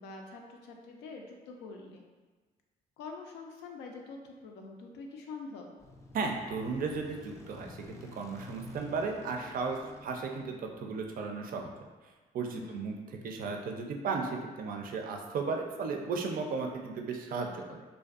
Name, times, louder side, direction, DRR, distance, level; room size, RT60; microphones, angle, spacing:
voice 1, 0.0-2.0 3.0-5.7 12.5-13.0, left 4 dB, 85° left, 1 dB, 0.4 m, -45 dB
sound 1, 5.8-11.3, left 2 dB, 15° left, 0.4 m, -50 dB
voice 2, 6.1-11.7 12.3-12.9 13.2-17.8, right 4 dB, 55° right, 2 dB, 0.4 m, -35 dB
2.5 x 2.2 x 2.4 m, 1.3 s
supercardioid pair, 65°, 17 cm